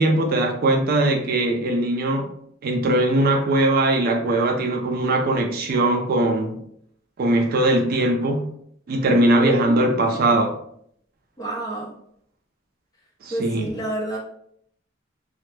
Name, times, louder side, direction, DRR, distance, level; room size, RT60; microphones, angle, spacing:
voice 1, 0.0-2.3 2.6-6.6 7.2-8.5 8.9-10.6 13.2-13.7, right 1 dB, 50° right, 0.3 m, -20 dB
voice 2, 9.3-10.5 11.4-11.9 13.3-14.2, right 2 dB, 20° left, 0.7 m, -29 dB
2.1 x 2.0 x 3.0 m
head